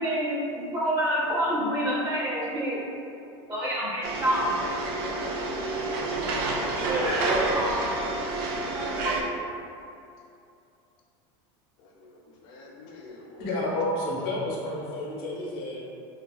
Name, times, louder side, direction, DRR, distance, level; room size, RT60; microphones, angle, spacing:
voice 1, 0.0-2.8 3.5-4.5 6.9-7.8 8.7-9.2, equal, 25° right, -7 dB, 0.7 m, -28 dB
sound 1, 4.0-9.2, right 2 dB, 65° right, 0.4 m, -29 dB
voice 2, 5.5-6.2 7.1-7.4 11.8-13.3, left 3 dB, 35° left, -1 dB, 0.4 m, -46 dB
voice 3, 13.2-15.8, left 1 dB, 60° left, -5 dB, 0.8 m, -30 dB
3.8 x 2.4 x 2.3 m, 2.6 s
supercardioid pair, 175°, 13 cm